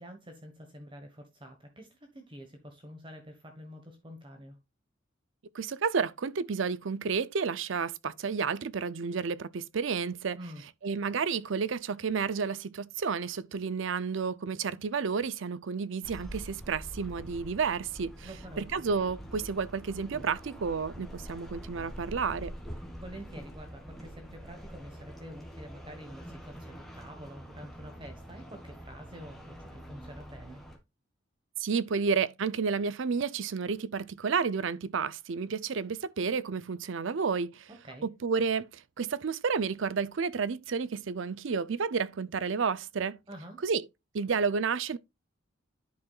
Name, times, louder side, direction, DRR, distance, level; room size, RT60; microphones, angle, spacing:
voice 1, 0.0-4.6 10.3-10.6 18.2-18.7 23.0-30.6 37.8-38.1 43.3-43.6, equal, 25° right, 1.3 m, -47 dB
voice 2, 5.5-10.4 10.8-18.3 18.6-22.5 31.6-37.7 38.0-43.2 43.6-43.8 44.1-45.0, right 5 dB, 65° right, 0.5 m, -31 dB
sound 1, 16.0-30.8, equal, ahead, 1.8 m, -45 dB
10.5 x 6.0 x 2.4 m
head